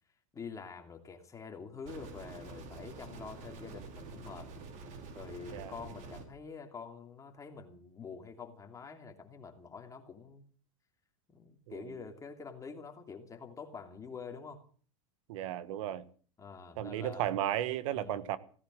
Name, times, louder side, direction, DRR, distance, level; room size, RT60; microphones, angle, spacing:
voice 1, 0.3-4.5 5.1-10.4 11.3-14.6 16.4-17.3 17.9-18.3, left 5 dB, 20° left, 5 dB, 3.0 m, -46 dB
sound 1, 1.9-6.2, right 3 dB, 45° right, 5.1 m, -47 dB
voice 2, 15.3-16.0 16.8-18.4, right 11 dB, 70° right, 15 dB, 1.4 m, -34 dB
17.5 x 10.0 x 7.8 m, 0.43 s
supercardioid pair, 125°, 17 cm